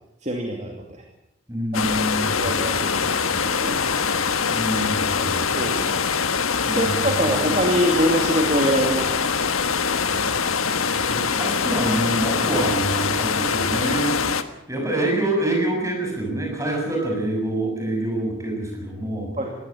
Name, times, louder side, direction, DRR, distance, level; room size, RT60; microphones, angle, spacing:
voice 1, 0.2-1.0 2.0-3.8 5.2-6.0 6.7-9.3 19.4-19.5, right 1 dB, 35° right, 2 dB, 2.5 m, -25 dB
voice 2, 1.5-2.5 4.5-5.4 6.7-7.5 11.1-14.4 14.7-19.3, right 1 dB, 15° right, 1 dB, 6.8 m, -26 dB
sound 1, 1.7-14.4, left 5 dB, 90° left, 1.5 m, -23 dB
21.0 x 17.0 x 8.5 m, 0.84 s
head